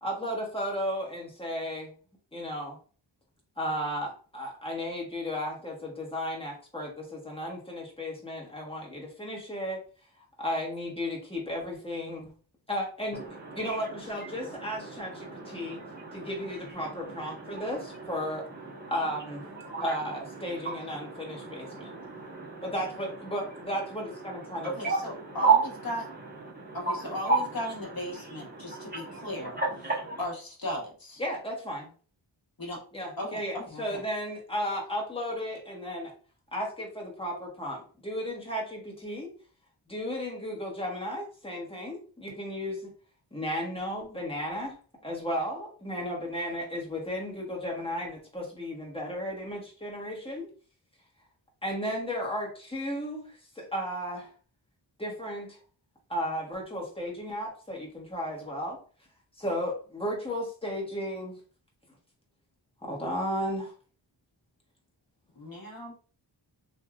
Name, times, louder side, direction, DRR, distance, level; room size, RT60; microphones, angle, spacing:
voice 1, 0.0-1.9 2.3-2.8 3.6-9.8 10.4-12.3 12.7-13.2 13.5-15.8 16.1-18.5 18.9-19.4 19.8-21.9 22.6-24.7 31.2-31.9 32.9-36.1 36.5-39.3 39.9-42.9 43.3-44.7 45.0-50.5 51.6-54.3 55.0-55.6 56.1-58.8 59.4-61.4 62.8-63.7, equal, 10° left, 1.2 m, -34 dB
voice 2, 13.1-30.2, right 4 dB, 20° right, 1.1 m, -34 dB
voice 3, 24.6-26.0 26.7-29.6 30.2-31.2 32.6-32.8 33.2-34.0 65.3-65.9, equal, 45° left, 1.1 m, -36 dB
3.2 x 2.6 x 2.4 m
wide cardioid pair, 60°, 47 cm